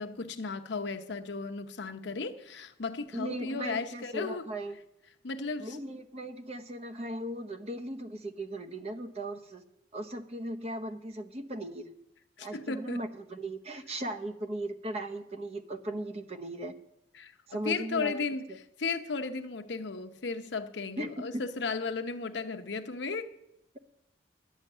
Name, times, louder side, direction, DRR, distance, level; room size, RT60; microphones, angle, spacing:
voice 1, 0.0-4.5 5.2-5.8 12.4-13.0 17.1-17.3 17.6-23.3, left 4 dB, 70° left, 0.8 m, -35 dB
voice 2, 3.1-4.8 5.6-9.6 9.9-11.9 12.4-16.7 17.5-18.1 21.0-21.4, right 1 dB, 35° right, 0.8 m, -37 dB
11.0 x 6.5 x 8.9 m
head